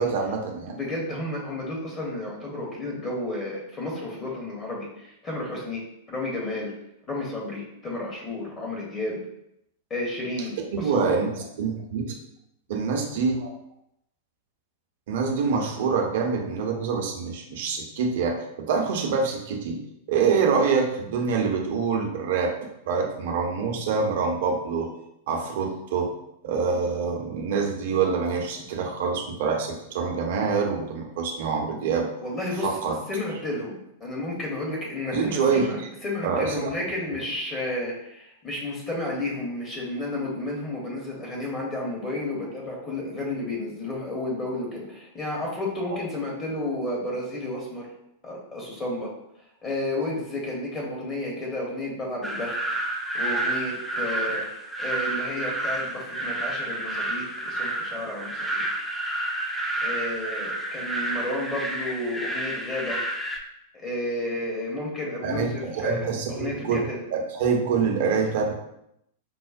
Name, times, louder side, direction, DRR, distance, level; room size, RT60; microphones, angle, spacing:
voice 1, 0.0-0.7 10.7-11.3 11.6-12.1 12.7-13.5 15.1-19.8 20.1-22.5 22.9-24.9 25.3-26.1 26.4-32.1 32.6-33.0 35.1-35.9 36.2-36.7 65.2-66.8 67.1-68.5, right 5 dB, 60° right, 2 dB, 0.7 m, -25 dB
voice 2, 0.7-5.8 6.1-6.7 7.1-9.2 9.9-11.2 32.2-32.8 33.1-47.9 48.2-49.1 49.6-52.6 53.1-58.7 59.8-63.0 63.7-67.0, left 1 dB, 25° left, -2 dB, 0.9 m, -32 dB
sound 1, 52.2-63.4, right 1 dB, ahead, 0.5 m, -30 dB
5.3 x 2.0 x 2.5 m, 0.80 s
figure-of-eight pair, 95°, 0 cm